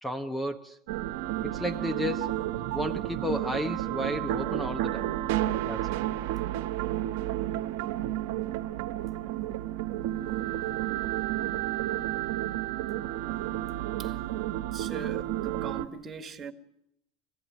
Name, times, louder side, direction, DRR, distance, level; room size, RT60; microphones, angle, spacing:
voice 1, 0.0-0.8 1.4-2.4 2.7-5.1 5.6-6.0, left 1 dB, 10° left, 0.9 m, -33 dB
sound 1, 0.9-15.9, right 14 dB, 75° right, 1.1 m, -31 dB
voice 2, 14.6-16.5, right 6 dB, 30° right, 1.7 m, -40 dB
23.5 x 16.0 x 9.3 m
supercardioid pair, 120°, 0 cm